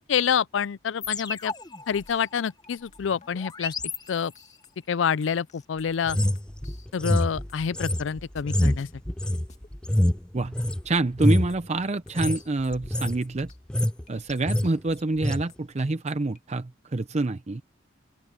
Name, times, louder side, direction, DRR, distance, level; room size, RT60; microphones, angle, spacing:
voice 1, 0.0-1.5 1.9-3.7 4.1-4.3 4.9-6.2 6.9-8.9, left 7 dB, 80° left, 0.4 m, -27 dB
sound 1, 1.0-4.7, left 5 dB, 20° left, 1.3 m, -37 dB
sound 2, 2.1-7.2 7.5-8.5 8.8-9.7 10.1-11.8 12.1-16.4, left 2 dB, 40° left, 2.2 m, -51 dB
sound 3, 6.1-10.8 11.1-11.6 12.1-12.4 12.7-13.2 13.5-14.0 14.3-14.7 15.2-15.4, left 1 dB, 5° left, 0.3 m, -25 dB
voice 2, 10.8-13.5 14.1-17.6, right 2 dB, 35° right, 0.6 m, -27 dB
open air
head